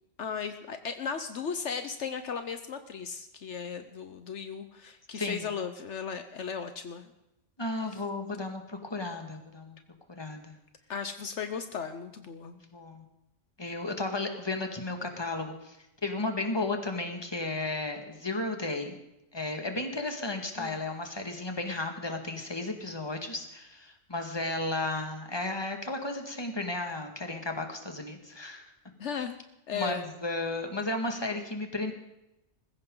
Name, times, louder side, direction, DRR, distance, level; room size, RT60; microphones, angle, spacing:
voice 1, 0.2-7.1 7.9-8.0 10.9-12.6 20.6-20.8 29.0-29.4 29.7-30.0, left 6 dB, 70° left, 9 dB, 1.2 m, -36 dB
voice 2, 5.1-5.5 7.6-9.8 10.2-10.6 12.7-13.0 13.6-15.8 16.0-19.0 19.3-28.6 29.1-29.2 29.7-31.9, left 2 dB, 20° left, 4 dB, 1.9 m, -34 dB
19.5 x 16.0 x 3.9 m, 0.89 s
omnidirectional pair, 1.2 m